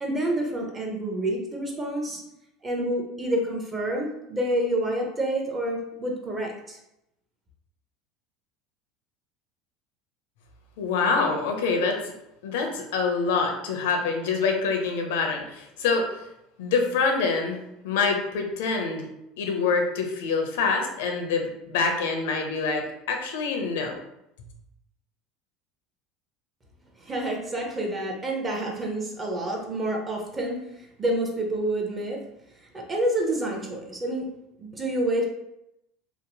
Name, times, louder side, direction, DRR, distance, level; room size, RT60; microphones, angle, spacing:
voice 1, 0.0-2.2 2.6-6.8 27.0-32.2 32.7-34.3 34.6-35.2, right 1 dB, 20° right, 0 dB, 0.6 m, -28 dB
voice 2, 10.8-12.1 12.4-16.1 16.6-19.1 19.4-23.9, left 4 dB, 85° left, 3 dB, 0.5 m, -26 dB
2.8 x 2.0 x 2.8 m, 0.84 s
supercardioid pair, 125°, 0 cm